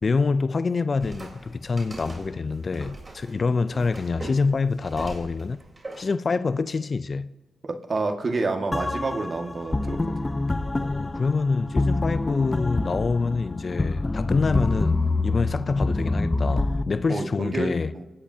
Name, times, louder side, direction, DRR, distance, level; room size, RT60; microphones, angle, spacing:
voice 1, 0.0-5.6 6.0-7.3 10.8-17.9, left 4 dB, 45° left, 0.5 m, -26 dB
sound 1, 1.0-6.0, right 1 dB, 30° right, 3.9 m, -41 dB
voice 2, 7.6-10.1 17.1-18.0, right 3 dB, 50° right, 1.8 m, -29 dB
sound 2, 8.7-16.8, left 2 dB, 25° left, 0.8 m, -26 dB
29.0 x 17.5 x 2.8 m
cardioid pair, 65°, 0 cm